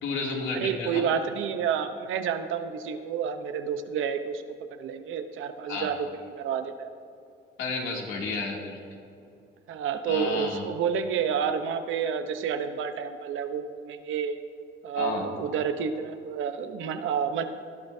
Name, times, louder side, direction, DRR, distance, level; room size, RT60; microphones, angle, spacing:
voice 1, 0.0-1.1 5.7-5.9 7.6-8.8 10.1-10.6 14.9-15.2, left 3 dB, 80° left, -2 dB, 2.8 m, -31 dB
voice 2, 0.5-4.4 4.8-6.9 9.7-14.4 14.8-17.4, right 7 dB, 85° right, 8 dB, 0.9 m, -29 dB
20.0 x 11.5 x 2.8 m, 2.6 s
cardioid pair, 90°, 20 cm